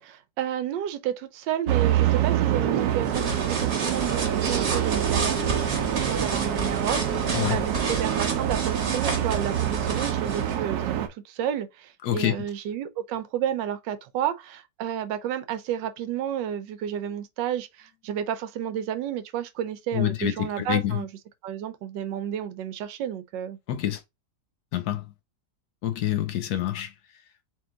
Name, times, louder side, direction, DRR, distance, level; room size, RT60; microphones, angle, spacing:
voice 1, 0.0-21.1 21.4-23.6, right 10 dB, 90° right, 1.3 m, -31 dB
sound 1, 1.7-11.1, right 11 dB, 70° right, 1.1 m, -26 dB
sound 2, 2.8-10.6, right 3 dB, 40° right, 1.2 m, -31 dB
voice 2, 12.0-12.3 19.9-21.0 23.7-24.0 24.7-25.1 25.8-26.9, left 12 dB, 70° left, 1.0 m, -27 dB
3.6 x 2.9 x 3.6 m
omnidirectional pair, 1.9 m